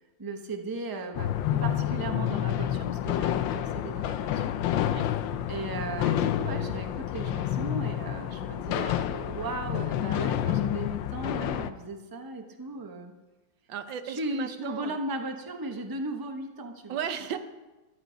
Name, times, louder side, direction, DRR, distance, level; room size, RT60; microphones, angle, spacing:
voice 1, 0.2-4.5 5.5-13.1 14.0-17.4, right 2 dB, 15° right, 4 dB, 0.9 m, -36 dB
sound 1, 1.2-11.7, left 11 dB, 80° left, 1.4 m, -29 dB
voice 2, 4.7-5.1 13.7-15.0 16.9-17.4, right 8 dB, 80° right, 10 dB, 1.5 m, -35 dB
14.0 x 11.0 x 5.2 m, 1.1 s
omnidirectional pair, 2.0 m